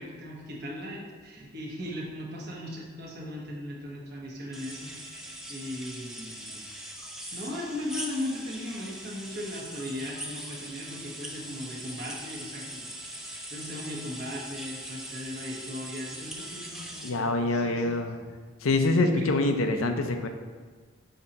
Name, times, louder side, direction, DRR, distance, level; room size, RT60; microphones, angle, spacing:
voice 1, 0.0-6.6 7.3-17.9 19.1-19.3, left 1 dB, 50° right, -3 dB, 1.2 m, -38 dB
sound 1, 4.5-17.1, right 1 dB, ahead, 0.5 m, -41 dB
voice 2, 17.0-18.2 18.6-20.3, left 2 dB, 85° left, 6 dB, 0.6 m, -25 dB
6.6 x 2.9 x 5.3 m, 1.5 s
head